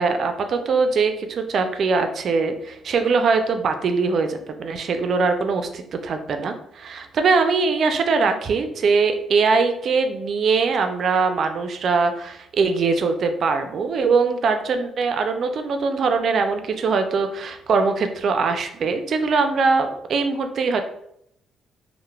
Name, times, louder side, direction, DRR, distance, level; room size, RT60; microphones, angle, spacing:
voice 1, 0.0-20.8, right 4 dB, 60° right, 7 dB, 0.3 m, -22 dB
3.1 x 2.0 x 2.2 m, 0.73 s
cardioid pair, 100°, 0 cm